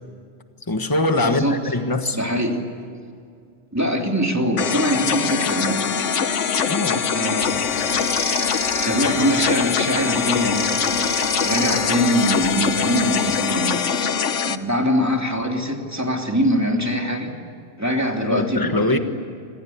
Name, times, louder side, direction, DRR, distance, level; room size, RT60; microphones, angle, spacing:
voice 1, 0.7-2.2 6.6-7.0 18.2-19.0, left 2 dB, 20° left, 7 dB, 1.5 m, -22 dB
voice 2, 1.2-1.8 2.1-2.6 3.7-5.9 7.1-7.7 8.8-10.9 11.4-13.8 14.4-17.3 17.8-19.0, equal, 15° right, 2 dB, 3.0 m, -23 dB
sound 1, 2.8-3.1 3.7-3.8 4.2-4.8 5.4-5.5 7.8-8.4 9.7-10.2 11.3-11.7 12.7-13.5, equal, 80° right, 6.1 m, -47 dB
sound 2, 4.6-14.6, left 7 dB, 85° left, 1.4 m, -23 dB
sound 3, 7.4-13.6, left 2 dB, 65° left, 2.9 m, -31 dB
26.5 x 26.0 x 8.6 m, 2.3 s
omnidirectional pair, 1.2 m